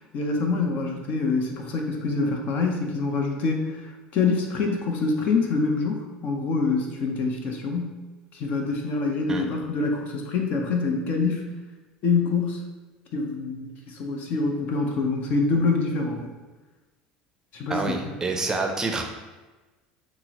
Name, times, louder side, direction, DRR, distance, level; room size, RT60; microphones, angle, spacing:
voice 1, 0.1-8.0 8.3-11.4 12.0-12.6 13.1-16.3 17.5-18.0, left 4 dB, 55° left, 2 dB, 0.6 m, -25 dB
voice 2, 17.7-19.0, right 3 dB, 20° right, 3 dB, 0.5 m, -27 dB
5.9 x 2.0 x 2.8 m, 1.2 s
supercardioid pair, 105°, 3 cm